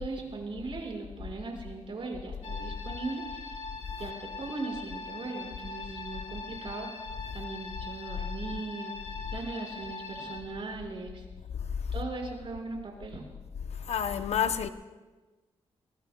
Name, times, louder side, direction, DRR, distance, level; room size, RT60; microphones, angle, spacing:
voice 1, 0.0-3.6 4.0-6.9 7.3-11.3 11.9-13.3, right 3 dB, 55° right, 5.4 m, -39 dB
sound 1, 2.4-10.4, left 4 dB, 85° left, 2.6 m, -42 dB
voice 2, 13.8-14.7, left 8 dB, 70° left, 0.8 m, -29 dB
24.0 x 21.5 x 2.3 m
cardioid pair, 75°, 11 cm